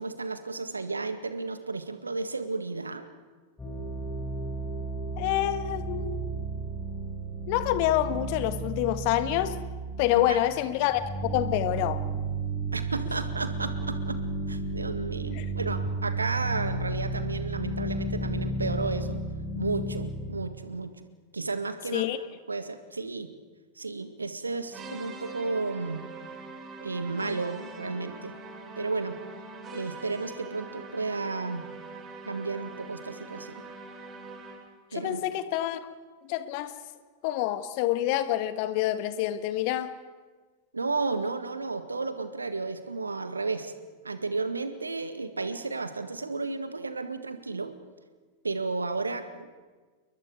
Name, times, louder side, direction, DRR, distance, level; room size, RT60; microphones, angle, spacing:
voice 1, 0.0-3.1 10.1-10.4 12.7-14.2 14.5-19.2 19.6-20.9 21.3-22.1 22.5-23.3 23.8-26.0 26.8-28.3 28.8-29.2 29.7-31.6 32.3-33.6 34.9-35.2 40.7-43.7 44.0-47.7 48.4-49.5, right 3 dB, 80° right, 1.7 m, -33 dB
sound 1, 3.6-20.3, right 2 dB, 10° left, 5.6 m, -33 dB
voice 2, 5.2-6.2 7.5-9.5 10.0-12.0 15.3-15.4 21.9-22.2 34.9-35.8 36.3-36.7 37.2-39.9, left 13 dB, 45° left, 1.5 m, -27 dB
sound 2, 24.7-34.8, right 3 dB, 25° right, 3.3 m, -43 dB
29.0 x 22.5 x 4.9 m
figure-of-eight pair, 90°, 0 cm